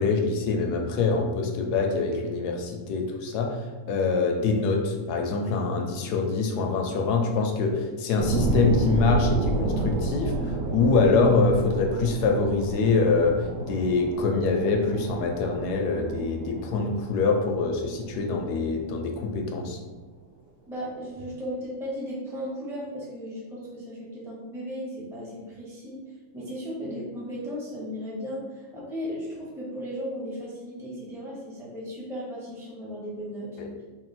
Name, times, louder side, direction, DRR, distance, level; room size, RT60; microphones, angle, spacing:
voice 1, 0.0-3.6 3.9-19.8 33.6-33.7, left 4 dB, 75° left, 3 dB, 1.1 m, -24 dB
sound 1, 8.2-19.2 19.7-19.8, right 2 dB, 70° right, 0.8 m, -31 dB
voice 2, 20.7-26.0 26.3-33.5, equal, 5° right, -6 dB, 0.5 m, -36 dB
3.7 x 2.3 x 4.0 m, 1.3 s
omnidirectional pair, 1.8 m